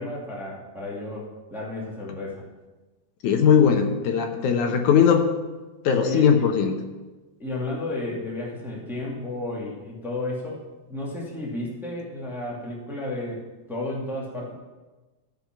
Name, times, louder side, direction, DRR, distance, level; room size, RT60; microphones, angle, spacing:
voice 1, 0.0-2.4 6.0-6.5 7.4-10.6 10.9-13.4 13.7-14.5, left 2 dB, ahead, -4 dB, 1.8 m, -32 dB
voice 2, 3.2-5.3 5.8-6.7, left 7 dB, 75° left, 5 dB, 2.3 m, -19 dB
15.5 x 5.3 x 6.0 m, 1.2 s
omnidirectional pair, 3.6 m